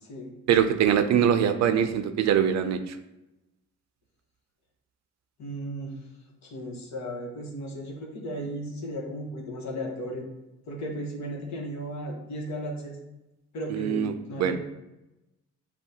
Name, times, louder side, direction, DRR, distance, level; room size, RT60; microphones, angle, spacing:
voice 1, 0.5-3.0 13.7-14.6, right 8 dB, 65° right, 9 dB, 0.5 m, -23 dB
voice 2, 5.4-5.9 6.4-10.3 10.7-13.0 13.5-14.6, equal, 65° left, 1 dB, 1.2 m, -35 dB
7.0 x 2.4 x 2.8 m, 0.96 s
cardioid pair, 90°, 30 cm